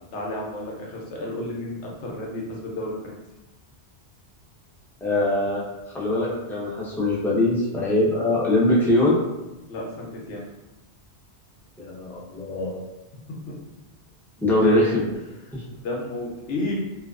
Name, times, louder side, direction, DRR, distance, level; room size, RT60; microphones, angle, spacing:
voice 1, 0.1-3.2 9.7-10.4 13.5-13.6 15.8-16.8, left 1 dB, 85° left, -2 dB, 1.0 m, -32 dB
voice 2, 5.0-5.6 5.9-9.2 11.8-12.7 14.4-15.1 15.5-15.6, left 1 dB, 5° left, -7 dB, 0.3 m, -22 dB
2.4 x 2.2 x 2.3 m, 1.0 s
omnidirectional pair, 1.2 m